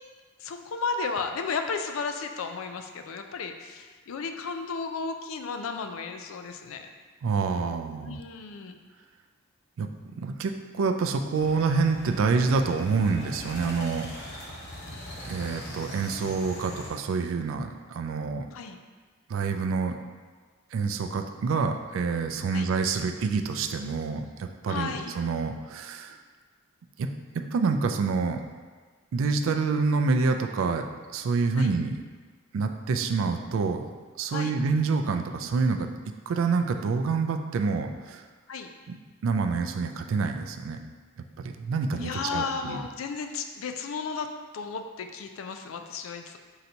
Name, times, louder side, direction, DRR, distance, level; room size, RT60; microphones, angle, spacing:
voice 1, 0.4-6.9 8.0-8.8 18.5-18.8 22.5-22.7 24.7-25.1 31.6-31.7 34.3-34.6 38.5-38.7 42.0-44.3 44.5-46.4, left 5 dB, 85° left, 6 dB, 0.4 m, -34 dB
voice 2, 7.2-8.2 9.8-14.6 14.9-15.0 15.2-18.5 19.3-20.0 20.7-26.2 27.0-28.4 29.1-30.9 31.1-32.0 32.5-33.8 34.2-35.9 36.3-38.2 38.9-39.0 39.2-40.8 41.4-42.8, right 4 dB, 75° right, 6 dB, 0.3 m, -27 dB
sound 1, 11.3-16.9, left 1 dB, 55° left, 1.0 m, -41 dB
3.9 x 2.7 x 4.4 m, 1.4 s
head